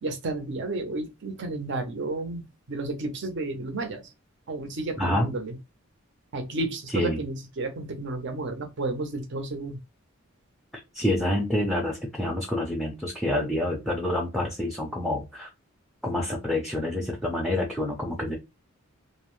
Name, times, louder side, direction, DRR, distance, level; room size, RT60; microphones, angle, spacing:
voice 1, 0.0-4.1 4.5-5.6 6.3-9.8, right 2 dB, 60° right, 0.6 m, -32 dB
voice 2, 5.0-5.3 6.9-7.2 10.9-15.5 16.0-18.4, left 1 dB, ahead, 0.4 m, -27 dB
2.6 x 2.0 x 3.0 m
head